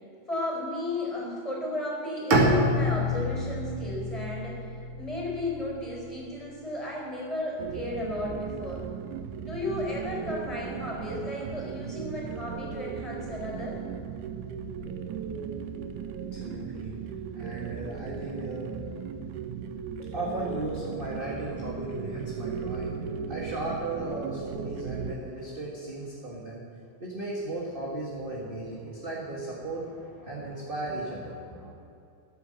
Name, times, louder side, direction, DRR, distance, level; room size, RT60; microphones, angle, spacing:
voice 1, 0.3-4.7 5.0-8.8 9.4-13.8, left 1 dB, 10° left, -2 dB, 4.3 m, -34 dB
Bowed string instrument, 2.3-6.2, equal, 50° right, 2.5 m, -27 dB
sound 1, 7.6-25.1, right 7 dB, 85° right, 2.3 m, -37 dB
voice 2, 16.3-16.9 17.3-18.7 20.1-22.9 23.3-26.6 27.0-31.7, right 2 dB, 25° right, -4 dB, 1.4 m, -36 dB
15.5 x 9.6 x 7.7 m, 2.6 s
omnidirectional pair, 3.5 m